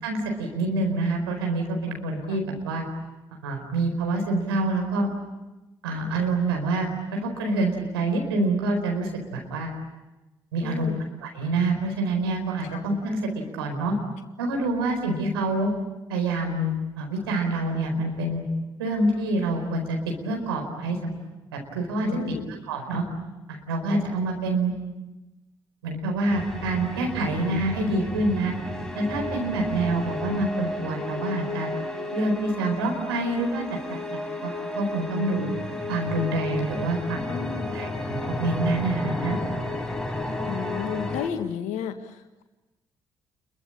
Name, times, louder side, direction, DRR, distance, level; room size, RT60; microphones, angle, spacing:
voice 1, 0.0-2.8 3.3-5.1 5.8-9.7 10.5-10.9 11.2-13.2 13.5-13.9 14.4-15.7 16.1-18.4 18.8-21.1 21.5-22.1 22.7-23.0 23.5-24.7 25.8-28.5 28.9-31.7 32.1-35.5 35.9-37.2 37.7-39.4, right 2 dB, 80° right, 2 dB, 4.5 m, -27 dB
voice 2, 10.6-11.0 12.7-12.8 22.1-22.5 37.3-37.8 40.4-42.4, left 8 dB, 65° left, 7 dB, 1.7 m, -32 dB
sound 1, 26.3-41.3, left 2 dB, 5° left, 4.9 m, -32 dB
29.5 x 23.0 x 8.6 m, 1.1 s
figure-of-eight pair, 45°, 13 cm